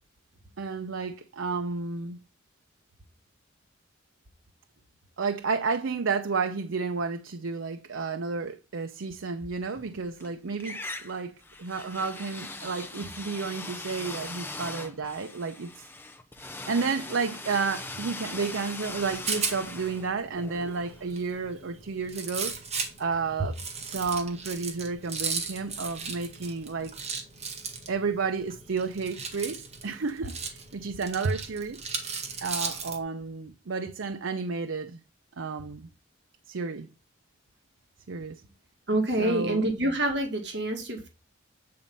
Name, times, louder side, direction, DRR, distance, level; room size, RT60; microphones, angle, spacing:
voice 1, 0.6-2.2 5.2-15.9 16.4-22.5 23.0-23.6 23.8-26.9 27.9-31.8 32.4-35.0 35.4-35.9 36.5-36.9 38.1-38.4 39.2-39.6, right 4 dB, 80° right, 0.6 m, -31 dB
sound 1, 9.7-10.3 10.6-21.5, left 2 dB, 10° left, 0.6 m, -40 dB
Rattle, 18.9-33.0, right 5 dB, 35° right, 1.5 m, -37 dB
voice 2, 38.9-41.1, right 1 dB, 60° right, 1.8 m, -27 dB
8.7 x 4.2 x 5.3 m
head